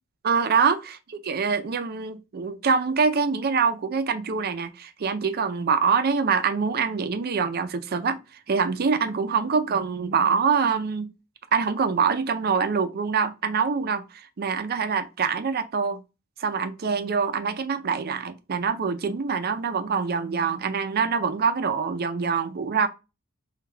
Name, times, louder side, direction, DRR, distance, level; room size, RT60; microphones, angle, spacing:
voice 1, 0.2-8.2 8.5-11.1 11.5-16.0 16.4-22.9, right 5 dB, 45° right, 0.5 m, -25 dB
3.8 x 2.3 x 2.6 m
head